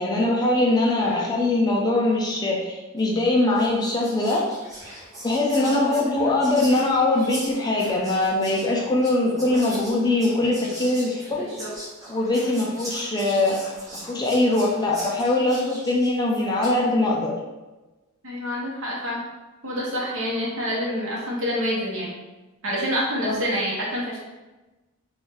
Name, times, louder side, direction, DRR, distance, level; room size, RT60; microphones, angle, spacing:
voice 1, 0.0-4.4 5.2-11.5 12.1-13.6 14.1-17.3 23.2-23.3, left 2 dB, 20° left, -2 dB, 0.4 m, -22 dB
voice 2, 1.0-1.4 5.6-6.1 11.4-11.7 18.2-19.2 19.6-22.1 22.6-24.2, equal, 60° right, -5 dB, 1.1 m, -28 dB
Whispering, 3.0-3.2 3.6-16.8, equal, 15° right, 1.0 m, -40 dB
3.0 x 2.6 x 3.7 m, 1.1 s
head